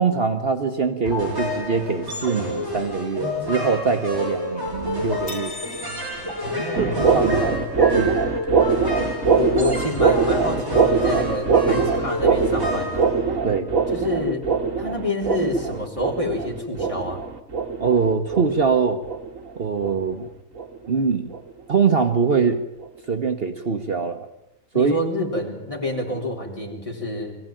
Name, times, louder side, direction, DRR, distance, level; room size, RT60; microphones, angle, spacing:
voice 1, 0.0-5.5 6.8-7.6 7.9-8.2 11.7-11.9 13.4-13.7 17.8-19.0 19.6-20.3 20.9-21.3 21.7-22.6 23.1-24.3 24.7-25.0, right 5 dB, 50° right, 6 dB, 1.3 m, -23 dB
sound 1, 1.0-13.8, left 2 dB, 15° right, 7.3 m, -29 dB
sound 2, 5.3-7.4, left 3 dB, 75° left, 1.9 m, -39 dB
voice 2, 6.4-7.7 9.0-9.1 9.4-13.1 13.9-14.5 14.8-17.2 24.7-27.4, left 2 dB, 25° left, -1 dB, 4.0 m, -28 dB
sound 3, 6.7-19.5 19.8-20.1 20.6-20.9 21.3-21.5 22.1-22.2 22.8-22.9, right 5 dB, 75° right, 1.9 m, -22 dB
22.0 x 16.0 x 9.1 m, 0.93 s
omnidirectional pair, 1.4 m